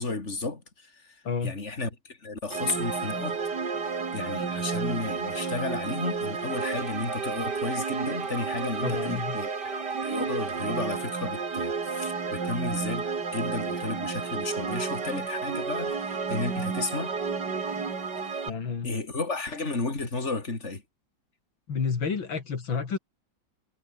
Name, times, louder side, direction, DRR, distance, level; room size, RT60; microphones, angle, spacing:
voice 1, 0.0-3.4 4.1-17.1 18.2-18.5 18.8-20.8, left 3 dB, 35° left, 4.1 m, -33 dB
sound 1, 2.5-18.5, right 5 dB, 60° right, 3.3 m, -31 dB
voice 2, 8.8-9.4 18.5-18.9 21.7-23.0, left 5 dB, 80° left, 3.4 m, -30 dB
omnidirectional pair, 2.1 m